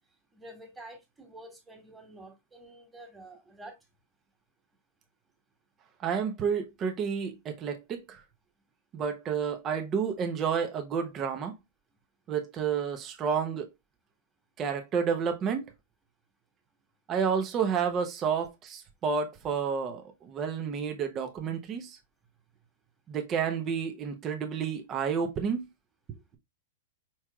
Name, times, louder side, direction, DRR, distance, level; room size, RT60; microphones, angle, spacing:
voice 1, 0.3-3.8, right 1 dB, 10° right, 1.9 m, -48 dB
voice 2, 6.0-8.2 8.9-11.6 12.3-13.7 14.6-15.7 17.1-22.0 23.1-25.7, right 6 dB, 30° right, 0.9 m, -30 dB
4.5 x 4.4 x 2.3 m
hypercardioid pair, 115°, 0 cm